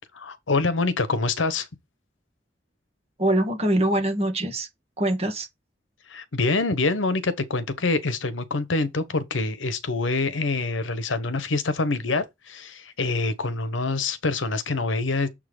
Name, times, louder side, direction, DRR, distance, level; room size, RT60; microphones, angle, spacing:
voice 1, 0.1-1.7 6.1-15.3, left 3 dB, 85° left, 1.0 m, -25 dB
voice 2, 3.2-4.7 5.0-5.5, right 1 dB, 35° right, 1.8 m, -23 dB
7.1 x 3.7 x 4.9 m
head